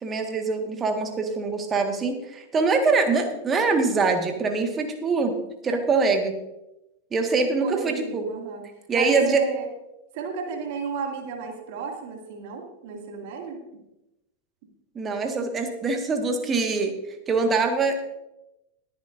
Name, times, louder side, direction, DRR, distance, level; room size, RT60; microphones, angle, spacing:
voice 1, 0.0-5.4 5.6-6.3 7.1-8.2 8.9-9.4 15.0-16.9 17.3-18.0, right 4 dB, 20° right, 5 dB, 1.7 m, -23 dB
voice 2, 7.3-8.6 8.9-9.7 10.1-13.6, right 5 dB, 50° right, 2 dB, 2.4 m, -33 dB
19.5 x 10.5 x 2.6 m, 0.92 s
figure-of-eight pair, 90°, 0 cm